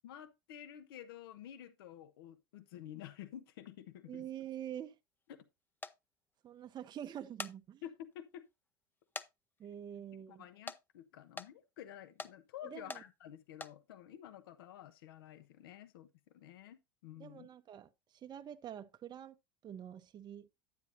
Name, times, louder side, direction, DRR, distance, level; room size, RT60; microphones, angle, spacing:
voice 1, 0.0-4.2 5.3-5.5 7.8-8.4 10.3-16.1 16.3-17.5, left 11 dB, 80° left, 1.0 m, -51 dB
voice 2, 4.1-5.0 6.4-7.8 9.6-10.4 12.6-13.0 17.2-19.4 19.6-20.5, right 10 dB, 35° right, 0.7 m, -46 dB
sound 1, 5.8-6.0 7.1-7.6 8.1-8.2 9.1-9.3 9.6-9.7 10.7-10.8 11.4-11.5 12.2-12.3 12.9-13.0 13.5-13.7, left 4 dB, 15° left, 0.7 m, -43 dB
9.5 x 9.4 x 2.6 m
hypercardioid pair, 80°, 12 cm